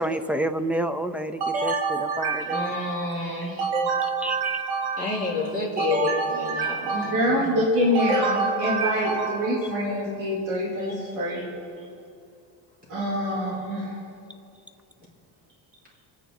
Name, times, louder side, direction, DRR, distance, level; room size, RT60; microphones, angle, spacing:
voice 1, 0.0-2.8 4.2-4.6 9.6-9.7, right 1 dB, 5° right, 10 dB, 0.4 m, -29 dB
sound 1, 1.4-3.1 3.6-5.3 5.8-7.4 7.9-9.7, right 4 dB, 75° right, 1.9 m, -27 dB
voice 2, 2.5-3.7 5.0-7.4 11.3-11.4, left 2 dB, 25° right, -5 dB, 4.5 m, -29 dB
voice 3, 6.9-11.5 12.9-14.0, equal, 55° right, -7 dB, 3.6 m, -25 dB
27.0 x 9.4 x 4.1 m, 2.5 s
cardioid pair, 160°, 38 cm